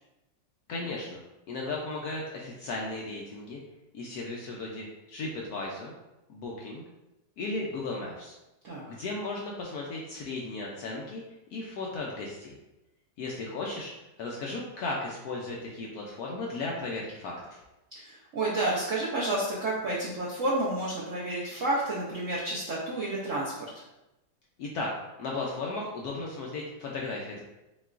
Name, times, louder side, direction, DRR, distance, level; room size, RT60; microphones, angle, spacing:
voice 1, 0.7-1.2 1.5-3.6 3.9-5.9 6.3-6.8 7.4-8.3 8.8-11.2 11.5-12.6 13.2-13.9 14.2-17.6 24.6-24.9 25.2-27.4, left 3 dB, 70° left, -2 dB, 0.9 m, -35 dB
voice 2, 17.9-23.5, right 2 dB, 70° right, -6 dB, 0.7 m, -30 dB
5.7 x 2.4 x 2.4 m, 0.96 s
omnidirectional pair, 2.1 m